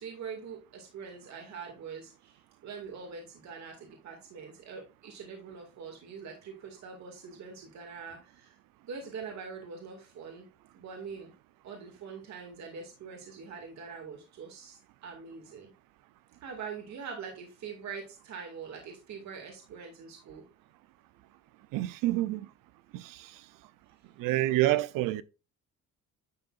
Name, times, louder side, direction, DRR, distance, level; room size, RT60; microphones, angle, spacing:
voice 1, 0.0-8.6 8.8-10.5 10.7-11.3 11.6-15.7 16.4-20.4, right 5 dB, 60° right, 2.3 m, -43 dB
voice 2, 21.7-22.5 22.9-23.4 24.2-25.2, right 16 dB, 90° right, 0.7 m, -28 dB
10.5 x 6.8 x 2.5 m
cardioid pair, 130°, 32 cm